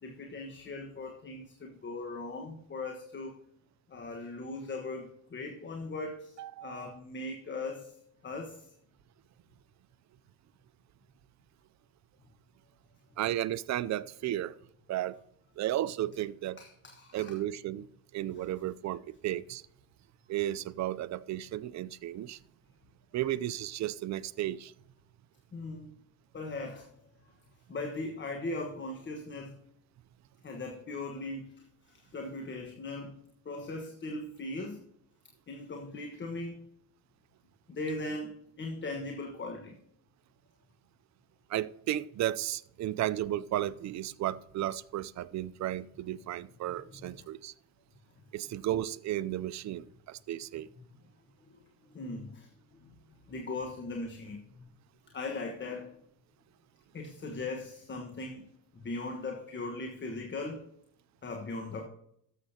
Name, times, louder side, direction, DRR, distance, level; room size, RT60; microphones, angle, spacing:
voice 1, 0.0-3.4 3.9-7.9 8.2-8.7 16.6-17.3 25.5-25.9 26.3-26.9 27.7-29.6 30.4-33.1 33.4-34.8 35.5-36.6 37.7-39.8 51.4-51.6 51.9-53.0 53.3-54.7 55.1-56.0 56.9-58.5 58.7-60.6 61.2-61.9, left 2 dB, 35° left, 3 dB, 1.4 m, -39 dB
voice 2, 6.4-7.0 13.2-14.6 14.9-15.2 15.6-16.6 17.1-17.9 18.1-19.6 20.3-22.4 23.1-24.7 41.5-47.5 48.3-50.7, right 13 dB, 55° right, 18 dB, 0.6 m, -34 dB
13.0 x 7.4 x 2.8 m, 0.71 s
supercardioid pair, 90°, 34 cm